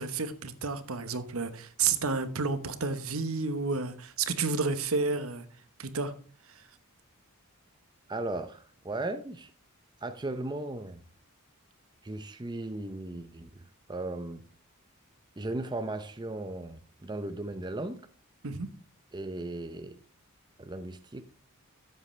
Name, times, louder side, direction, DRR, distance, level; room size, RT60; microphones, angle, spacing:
voice 1, 0.0-5.5 5.8-6.1 18.4-18.7, right 4 dB, 65° right, 1.1 m, -31 dB
voice 2, 8.1-9.5 10.0-11.0 12.0-13.6 13.9-14.4 15.4-18.0 19.1-20.0 20.6-21.2, right 2 dB, 20° right, 0.6 m, -36 dB
13.0 x 8.0 x 3.3 m
head